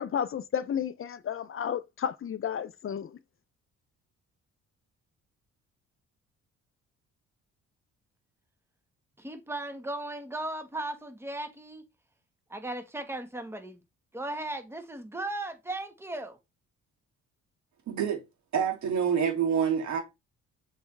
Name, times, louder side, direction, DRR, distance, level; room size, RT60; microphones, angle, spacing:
voice 1, 0.0-3.1, left 8 dB, 45° left, 0.6 m, -32 dB
voice 2, 9.2-11.8 12.5-13.8 14.1-16.4, right 2 dB, 10° right, 1.5 m, -36 dB
voice 3, 17.9-18.2 18.5-20.0, right 7 dB, 70° right, 2.8 m, -27 dB
7.0 x 4.5 x 3.4 m
cardioid pair, 90°, 30 cm